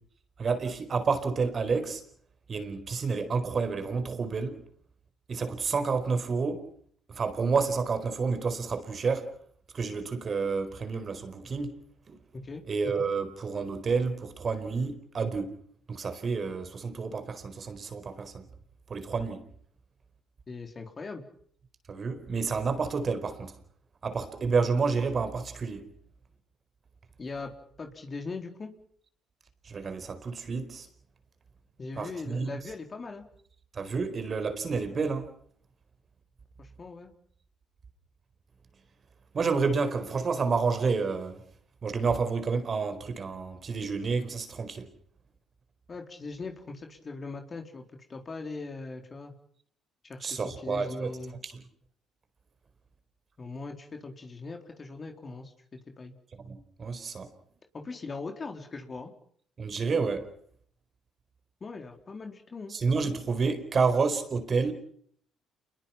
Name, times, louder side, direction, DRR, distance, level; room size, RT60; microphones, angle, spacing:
voice 1, 0.4-2.0 2.5-4.6 5.3-6.7 7.1-9.3 9.7-11.8 12.1-12.2 12.7-15.6 15.9-18.5 18.9-19.4 21.9-23.6 24.0-25.9 29.6-30.9 32.0-32.5 33.7-35.3 39.3-41.4 41.8-44.9 50.2-51.1 51.4-51.5 56.4-57.3 59.6-60.3 62.7-64.7, right 4 dB, 45° right, 4.5 m, -29 dB
voice 2, 20.5-21.2 27.2-27.5 27.8-28.7 31.8-33.2 36.6-37.1 45.9-47.8 48.1-49.3 50.0-51.4 53.4-55.5 56.0-56.1 57.7-59.1 61.6-62.7, left 3 dB, 35° left, 4.1 m, -40 dB
28.5 x 22.0 x 5.9 m
supercardioid pair, 65°, 0 cm